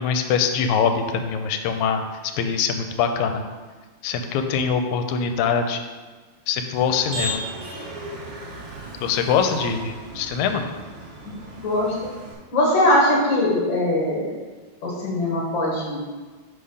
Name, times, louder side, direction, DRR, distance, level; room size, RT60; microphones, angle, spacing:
voice 1, 0.0-3.4 4.0-5.8 6.5-7.4 9.0-10.7, left 6 dB, 85° left, 6 dB, 2.0 m, -23 dB
Motor vehicle (road), 6.8-12.3, right 1 dB, 65° right, 1.2 m, -35 dB
voice 2, 11.6-12.1 12.5-14.4 14.8-16.0, left 1 dB, 45° left, -4 dB, 1.9 m, -21 dB
4.9 x 4.5 x 5.4 m, 1.4 s
omnidirectional pair, 3.3 m